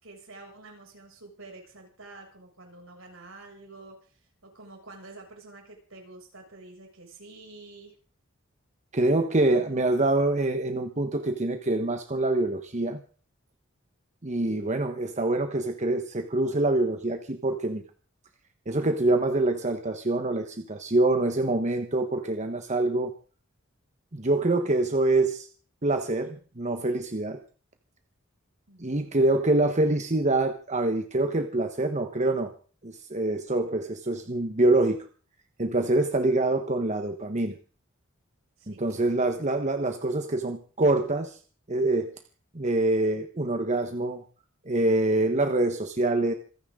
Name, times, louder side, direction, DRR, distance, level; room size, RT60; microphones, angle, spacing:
voice 1, 0.0-7.9 28.7-29.2 38.6-39.2, right 2 dB, 75° right, 2 dB, 7.1 m, -48 dB
voice 2, 8.9-13.0 14.2-17.8 18.7-23.1 24.1-25.5 25.8-27.4 28.8-32.5 32.8-35.0 35.6-37.5 38.7-41.4 41.7-42.1 42.5-44.2 44.6-46.3, right 2 dB, 35° right, 7 dB, 1.3 m, -25 dB
27.5 x 10.0 x 3.9 m, 0.39 s
head